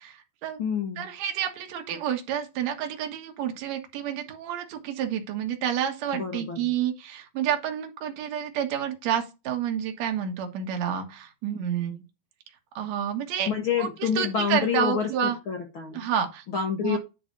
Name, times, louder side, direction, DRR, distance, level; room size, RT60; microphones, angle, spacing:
voice 1, 0.0-0.6 1.0-12.0 12.7-13.5 13.8-15.4 15.9-16.4 16.8-17.0, right 9 dB, 60° right, 2.4 m, -29 dB
voice 2, 0.6-1.1 6.1-6.7 13.5-16.1 16.5-17.0, left 7 dB, 65° left, 1.2 m, -28 dB
10.0 x 4.0 x 5.2 m
omnidirectional pair, 4.1 m